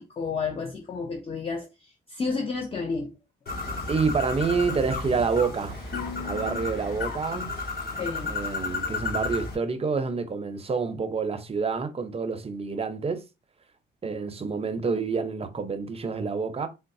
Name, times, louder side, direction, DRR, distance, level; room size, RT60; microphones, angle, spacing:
voice 1, 0.0-3.1 7.9-8.4, left 4 dB, 30° left, 0.6 m, -31 dB
Bird, 3.5-9.6, left 3 dB, 50° left, 1.8 m, -33 dB
voice 2, 3.9-5.9 6.2-7.6 8.2-13.2 14.0-16.7, right 4 dB, 30° right, 0.6 m, -28 dB
sound 1, 5.9-8.9, left 6 dB, 85° left, 0.9 m, -42 dB
3.9 x 2.0 x 2.6 m
cardioid pair, 90°, 20 cm